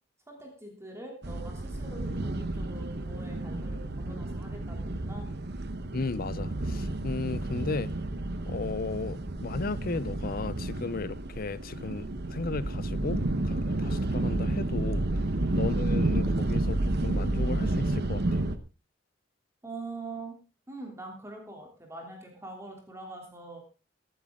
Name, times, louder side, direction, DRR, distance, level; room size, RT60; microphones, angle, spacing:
voice 1, 0.3-5.3 15.3-15.5 19.6-20.4 20.7-23.6, right 2 dB, 15° right, 3.1 m, -43 dB
sound 1, 1.2-18.6, right 2 dB, 60° right, 1.1 m, -31 dB
voice 2, 5.9-7.9 8.5-15.0 15.5-18.2, left 3 dB, 50° left, 0.6 m, -35 dB
16.0 x 12.0 x 3.7 m
head